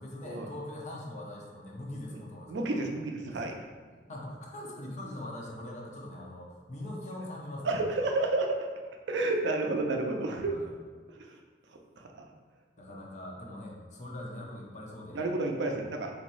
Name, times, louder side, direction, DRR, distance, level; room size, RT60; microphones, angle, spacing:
voice 1, 0.0-2.8 3.3-3.4 3.9-7.8 10.4-10.7 12.8-15.3, left 1 dB, 40° left, -2 dB, 0.7 m, -42 dB
voice 2, 2.5-3.5 7.6-8.6 9.1-10.5 11.2-11.3 12.1-12.3 15.1-16.1, right 2 dB, 70° right, 2 dB, 0.5 m, -30 dB
4.2 x 3.0 x 2.6 m, 1.5 s
head